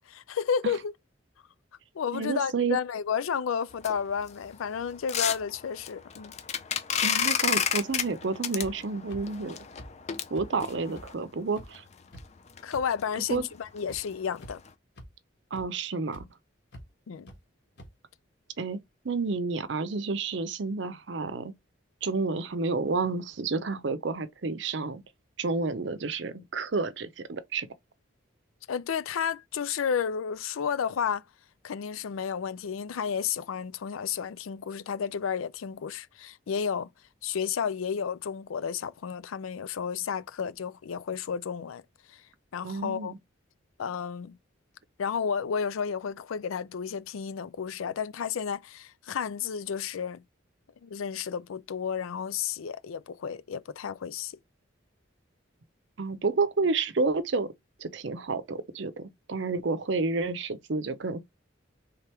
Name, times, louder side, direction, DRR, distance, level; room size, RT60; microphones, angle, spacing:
voice 1, 0.1-0.9 1.9-6.3 12.6-14.6 17.1-17.3 28.7-31.2 31.6-36.9 37.2-41.8 42.1-42.2 42.5-43.1 43.8-44.4 45.0-50.2 50.8-54.4, left 7 dB, 85° left, 0.4 m, -32 dB
voice 2, 2.1-2.8 7.0-9.6 10.3-11.8 13.3-13.4 15.5-16.2 18.6-18.8 19.0-21.5 22.0-25.0 25.4-27.7 42.6-43.2 56.0-57.5 57.8-61.2, right 4 dB, 60° right, 0.6 m, -30 dB
sound 1, 3.7-11.1 11.7-11.8 12.2-12.3 12.6-12.7 13.0-13.1 13.5-13.8 14.1-14.2 14.7-14.8, left 8 dB, 35° left, 0.5 m, -31 dB
sound 2, 8.6-8.7 9.1-9.2 9.8-9.9 10.3-10.5 11.0-11.1 11.6-11.7 12.1-12.2 12.7-12.8 13.3-13.4 13.9-14.0 14.4-14.7 15.0-15.1 15.5-15.6 16.1-16.2 16.7-16.8 17.3-17.4 17.8-17.9, equal, 55° left, 1.3 m, -45 dB
3.5 x 3.5 x 4.3 m
head